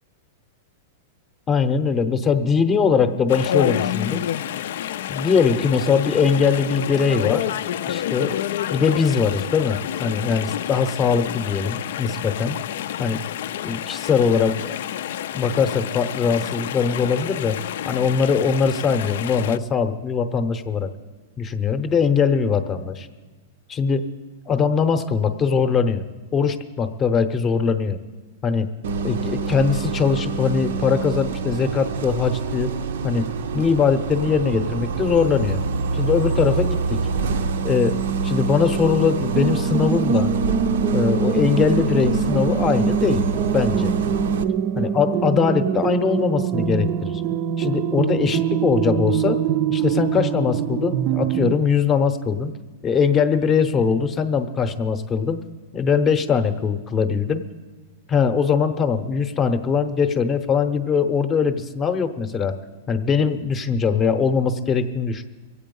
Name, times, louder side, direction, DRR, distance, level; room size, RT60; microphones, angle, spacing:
voice 1, 1.5-4.3 5.1-7.5 7.9-8.4 8.7-12.6 13.0-13.2 13.6-14.7 15.3-17.6 17.8-20.9 21.4-23.1 23.7-24.1 24.5-26.0 26.3-28.0 28.4-28.7 29.0-32.7 33.0-33.3 33.5-35.6 35.9-37.0 37.6-38.0 38.2-40.3 40.9-43.3 43.5-43.9 44.8-47.2 47.6-49.4 49.7-52.5 52.8-55.4 55.7-57.4 58.1-62.6 62.9-65.2, left 6 dB, 20° left, 9 dB, 0.7 m, -21 dB
Chatter / Stream, 3.3-19.6, left 11 dB, 65° left, 0.4 m, -29 dB
Bus, 28.8-44.4, right 4 dB, 80° right, 0.7 m, -26 dB
sound 1, 39.3-51.6, right 8 dB, 35° right, 0.4 m, -24 dB
22.5 x 8.3 x 5.4 m, 1.3 s
supercardioid pair, 155°, 0 cm